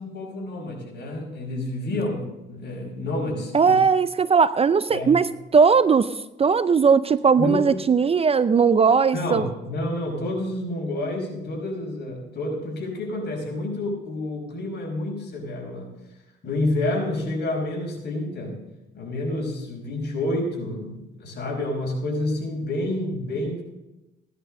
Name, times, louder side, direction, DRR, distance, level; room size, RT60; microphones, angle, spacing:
voice 1, 0.0-3.8 4.9-5.1 7.4-7.7 9.1-15.9 16.4-18.6 18.9-23.6, left 1 dB, 60° left, -1 dB, 5.6 m, -29 dB
voice 2, 3.5-6.1 6.4-9.5, right 5 dB, 30° right, 14 dB, 0.5 m, -18 dB
17.0 x 11.0 x 3.8 m, 0.99 s
cardioid pair, 90°, 20 cm